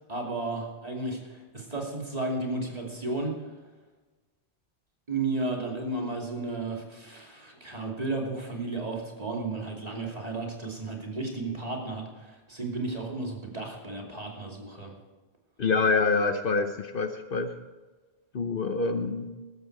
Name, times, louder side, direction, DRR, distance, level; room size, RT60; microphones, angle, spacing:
voice 1, 0.1-3.5 5.1-14.9, right 2 dB, 35° right, -1 dB, 2.7 m, -33 dB
voice 2, 15.6-17.5 18.3-19.3, left 4 dB, 55° left, 8 dB, 1.0 m, -26 dB
14.5 x 13.0 x 4.7 m, 1.3 s
omnidirectional pair, 1.1 m